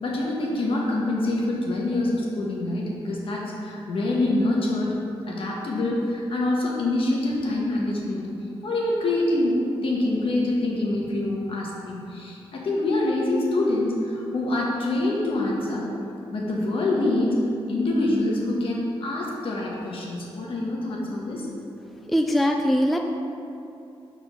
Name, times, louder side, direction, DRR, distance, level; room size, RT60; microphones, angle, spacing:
voice 1, 0.0-4.9 5.3-8.3 8.6-15.8 16.3-17.4 17.7-21.4, left 2 dB, 60° left, -3 dB, 1.3 m, -25 dB
voice 2, 22.1-23.0, equal, ahead, 3 dB, 0.3 m, -21 dB
5.6 x 3.9 x 5.6 m, 2.6 s
cardioid pair, 100°, 10 cm